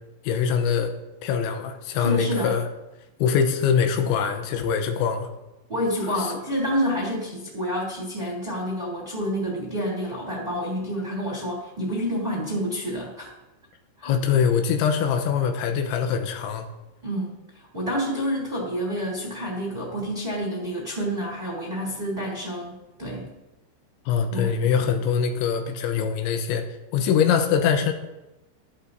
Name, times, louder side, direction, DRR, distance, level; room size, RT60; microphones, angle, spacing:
voice 1, 0.2-0.9 1.2-2.6 3.2-5.3 6.2-6.3 14.0-16.7 24.1-26.7 26.9-27.9, left 7 dB, 85° left, 6 dB, 3.1 m, -23 dB
voice 2, 2.0-2.5 5.7-13.3 14.0-14.1 17.0-17.4 17.7-23.3 24.3-24.7, equal, 15° right, -4 dB, 2.1 m, -28 dB
13.5 x 11.5 x 2.6 m, 0.99 s
omnidirectional pair, 5.4 m